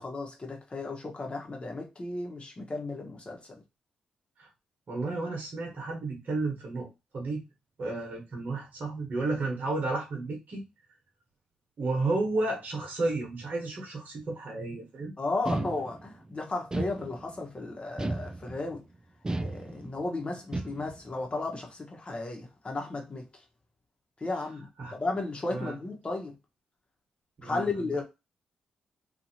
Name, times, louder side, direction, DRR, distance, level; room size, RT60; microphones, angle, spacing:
voice 1, 0.0-3.6 15.2-18.8 19.4-23.3 24.2-26.4 27.4-28.0, left 3 dB, 35° left, 1.1 m, -34 dB
voice 2, 4.9-6.9 7.1-7.4 7.8-10.6 11.8-15.1 24.8-24.9 25.5-25.7 27.4-27.9, right 2 dB, 55° right, 1.1 m, -32 dB
sound 1, 15.5-16.2 16.7-17.5 18.0-18.8 19.2-20.1 20.5-21.1, right 2 dB, 20° right, 0.3 m, -34 dB
2.8 x 2.6 x 2.7 m
hypercardioid pair, 40°, 3 cm